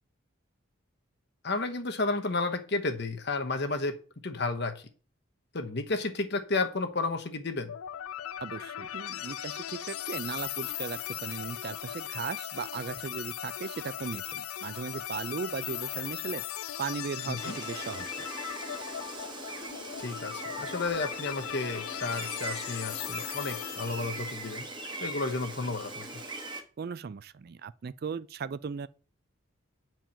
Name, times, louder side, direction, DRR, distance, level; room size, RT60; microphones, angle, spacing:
voice 1, 1.4-3.9 4.2-4.8 5.5-7.7 17.3-17.6 20.0-24.7 25.0-26.1, left 3 dB, 50° left, 1.1 m, -32 dB
sound 1, 7.7-24.6, left 11 dB, 90° left, 0.4 m, -38 dB
voice 2, 8.4-16.4 16.8-18.3 26.8-28.9, right 5 dB, 45° right, 0.3 m, -37 dB
Gull seagull, 17.4-26.6, right 2 dB, 20° right, 1.1 m, -41 dB
9.1 x 4.6 x 5.7 m
head